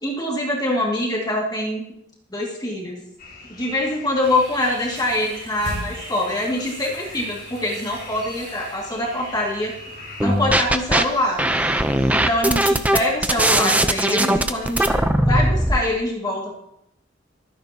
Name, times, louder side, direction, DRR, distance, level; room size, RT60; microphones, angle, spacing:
voice 1, 0.0-1.8 2.3-3.0 3.5-9.7 10.2-11.4 12.1-15.0 15.3-16.6, left 1 dB, 20° left, -3 dB, 2.3 m, -24 dB
me froggies, 3.2-10.3, left 3 dB, 50° left, 4.0 m, -41 dB
sound 1, 4.2-12.5, right 1 dB, 75° right, 5.4 m, -40 dB
sound 2, 10.2-11.0 11.4-15.8, right 1 dB, 10° right, 0.7 m, -19 dB
25.0 x 10.5 x 2.9 m, 0.78 s
head